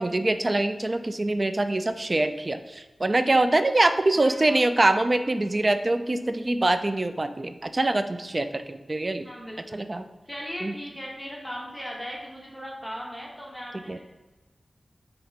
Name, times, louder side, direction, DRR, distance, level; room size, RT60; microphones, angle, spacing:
voice 1, 0.0-9.3 9.7-10.1 10.6-10.7 13.9-14.0, right 2 dB, 40° right, 9 dB, 0.3 m, -24 dB
voice 2, 4.1-4.6 9.2-9.8 10.3-14.0, equal, 10° left, -3 dB, 1.2 m, -38 dB
6.3 x 2.9 x 2.9 m, 1.1 s
cardioid pair, 45°, 0 cm